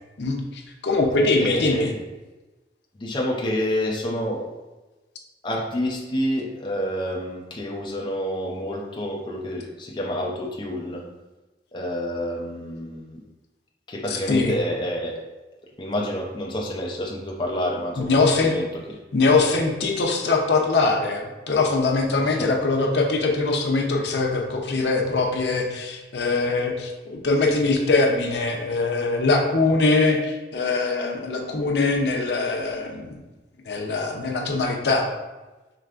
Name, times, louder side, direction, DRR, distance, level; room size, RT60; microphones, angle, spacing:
voice 1, 0.2-1.9 14.1-14.5 18.0-18.5 19.1-33.2 33.7-35.1, left 3 dB, 75° left, 1 dB, 0.6 m, -22 dB
voice 2, 1.4-2.0 3.0-4.5 5.4-11.0 11.7-13.2 13.9-15.2 15.8-18.8 22.2-22.5, equal, 25° left, -2 dB, 0.5 m, -28 dB
4.9 x 3.2 x 2.4 m, 1.1 s
head